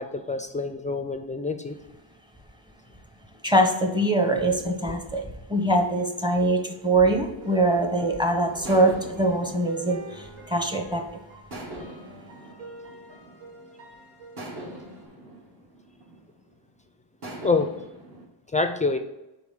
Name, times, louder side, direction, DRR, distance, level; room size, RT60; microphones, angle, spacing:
voice 1, 0.0-1.8 17.4-17.7 18.5-19.0, left 3 dB, 15° left, 7 dB, 0.4 m, -26 dB
voice 2, 3.4-11.0, right 1 dB, 10° right, 4 dB, 0.8 m, -23 dB
sound 1, 7.4-15.1, right 1 dB, 75° right, 1.6 m, -46 dB
sound 2, 8.6-10.9 11.5-13.6 14.4-16.6 17.2-18.2, right 1 dB, 55° right, 2.0 m, -42 dB
4.8 x 3.9 x 5.6 m, 0.95 s
cardioid pair, 105°, 47 cm